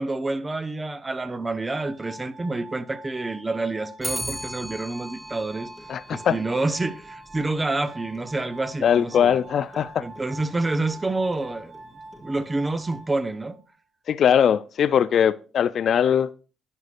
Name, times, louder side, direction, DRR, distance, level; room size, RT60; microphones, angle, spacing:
voice 1, 0.0-5.7 6.1-9.4 10.0-11.8 12.2-13.6, right 2 dB, 20° right, 0.8 m, -28 dB
Glass, 1.7-13.7, right 2 dB, 65° right, 1.1 m, -45 dB
Clock, 4.0-13.4, equal, ahead, 1.0 m, -40 dB
voice 2, 5.9-6.4 8.8-10.0 14.1-16.3, left 8 dB, 60° left, 0.4 m, -21 dB
11.0 x 8.0 x 2.5 m
supercardioid pair, 70°, 0 cm